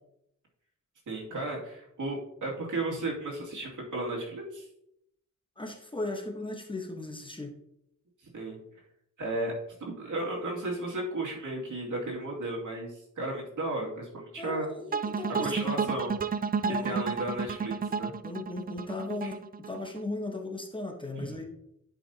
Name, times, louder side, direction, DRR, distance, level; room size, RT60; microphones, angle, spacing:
voice 1, 1.1-4.7 8.3-8.6 9.2-9.5 9.8-14.7 15.4-16.1 16.7-18.1 19.2-19.3 21.2-21.3, right 2 dB, 70° right, -3 dB, 2.5 m, -34 dB
voice 2, 5.6-7.5 14.4-16.0 16.6-17.0 18.2-21.4, left 2 dB, 15° left, 2 dB, 1.2 m, -37 dB
sound 1, 14.9-20.0, right 5 dB, 30° right, 0.3 m, -31 dB
11.0 x 5.4 x 2.9 m, 0.77 s
wide cardioid pair, 90°, 32 cm